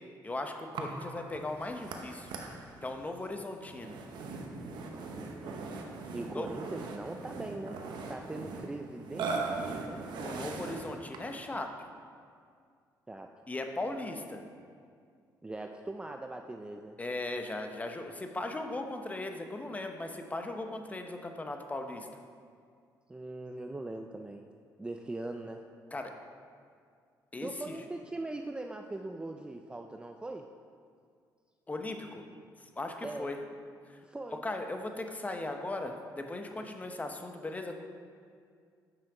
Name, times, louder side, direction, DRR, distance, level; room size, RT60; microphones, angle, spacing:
voice 1, 0.2-2.3 2.8-3.9 6.3-6.5 10.2-11.7 13.5-14.4 17.0-22.1 25.9-26.1 27.3-27.8 31.7-32.2 32.8-33.4 33.9-34.0 34.4-37.8, left 2 dB, 20° left, 5 dB, 0.8 m, -38 dB
Burping eructation, 0.7-11.4, right 3 dB, 75° right, 0.8 m, -40 dB
voice 2, 4.9-5.8 6.1-7.8 8.1-10.1 13.1-13.3 15.4-17.0 23.1-24.5 24.8-25.6 27.4-30.5 33.0-33.3 34.0-34.4, right 2 dB, 15° right, 4 dB, 0.4 m, -41 dB
7.8 x 5.6 x 4.9 m, 2.2 s
cardioid pair, 90°, 8 cm